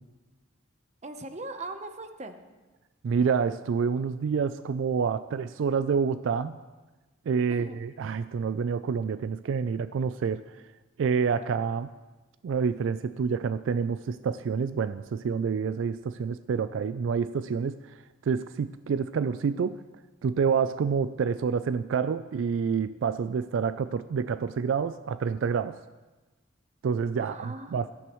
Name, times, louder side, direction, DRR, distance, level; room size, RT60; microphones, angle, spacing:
voice 1, 1.0-2.4 7.5-7.8 27.2-27.8, right 2 dB, 35° right, 8 dB, 0.8 m, -39 dB
voice 2, 3.0-6.6 7.3-10.4 11.0-11.9 12.4-17.8 18.2-19.8 20.2-25.8 26.8-27.9, right 6 dB, 75° right, 14 dB, 0.3 m, -28 dB
17.0 x 13.5 x 3.1 m, 1.2 s
head